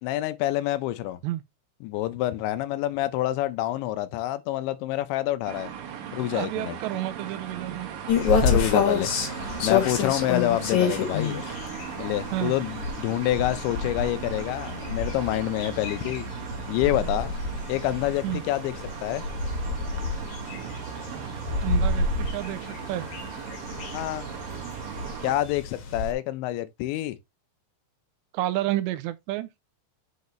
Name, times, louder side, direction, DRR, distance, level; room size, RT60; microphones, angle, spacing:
voice 1, 0.0-1.2 1.8-5.7 6.1-6.8 8.3-9.1 9.6-11.4 12.0-16.3 16.7-17.3 17.7-19.2 23.9-24.3 25.2-27.2, left 14 dB, 80° left, 2.9 m, -27 dB
sound 1, 5.5-25.3, right 8 dB, 60° right, 2.7 m, -38 dB
voice 2, 6.3-7.9 12.3-12.5 18.2-18.4 21.6-23.1 28.3-29.5, right 15 dB, 80° right, 2.7 m, -30 dB
sound 2, 8.1-26.1, left 5 dB, 55° left, 2.2 m, -29 dB
8.1 x 5.3 x 3.1 m
omnidirectional pair, 5.3 m